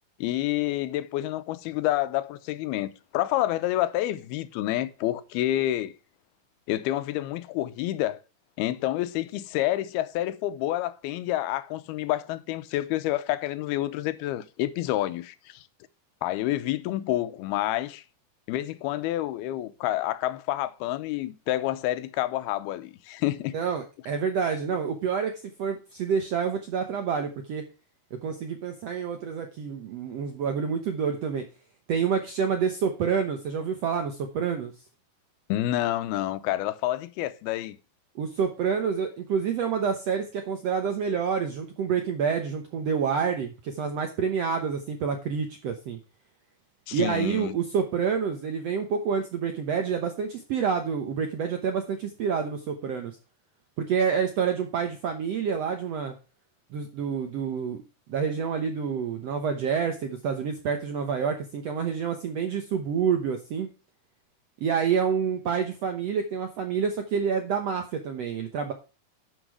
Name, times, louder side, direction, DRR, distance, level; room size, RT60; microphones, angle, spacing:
voice 1, 0.2-5.9 6.7-8.2 8.6-15.6 16.2-18.0 18.5-23.5 35.5-37.8 46.9-47.6, left 14 dB, 85° left, 2.7 m, -28 dB
voice 2, 23.5-27.7 28.1-31.4 31.9-34.7 38.1-46.0 46.9-53.2 53.8-56.1 56.7-57.8 58.1-63.7 64.6-68.7, right 6 dB, 80° right, 1.4 m, -28 dB
11.5 x 6.2 x 4.7 m
omnidirectional pair, 4.4 m